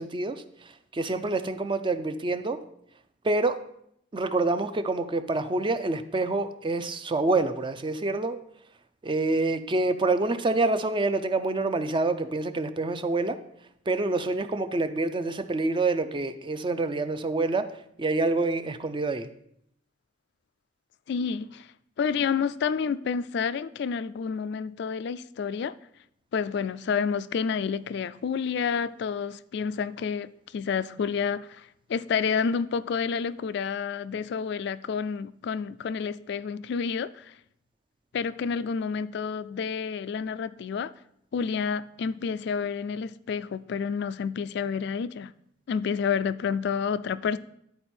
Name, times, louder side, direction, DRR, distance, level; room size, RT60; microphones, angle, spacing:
voice 1, 0.0-2.6 3.2-3.6 4.1-8.4 9.0-13.4 13.9-17.7 18.0-19.3, right 2 dB, 25° right, 0.4 m, -27 dB
voice 2, 21.1-21.7 22.0-25.8 26.3-37.3 38.1-40.9 41.3-45.3 45.7-47.4, left 6 dB, 65° left, 0.3 m, -29 dB
11.0 x 4.5 x 4.3 m
head